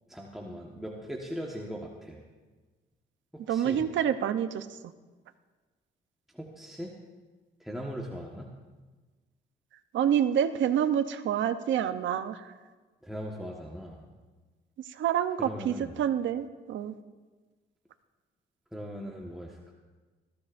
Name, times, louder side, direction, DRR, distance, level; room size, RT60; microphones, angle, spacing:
voice 1, 0.1-2.2 3.3-3.8 6.3-6.9 7.6-8.5 13.0-14.0 15.4-15.9 18.7-19.7, equal, ahead, -2 dB, 1.5 m, -39 dB
voice 2, 3.5-4.8 9.9-12.4 14.9-17.0, right 9 dB, 70° right, 10 dB, 0.8 m, -27 dB
20.5 x 15.0 x 2.6 m, 1.3 s
cardioid pair, 90°, 20 cm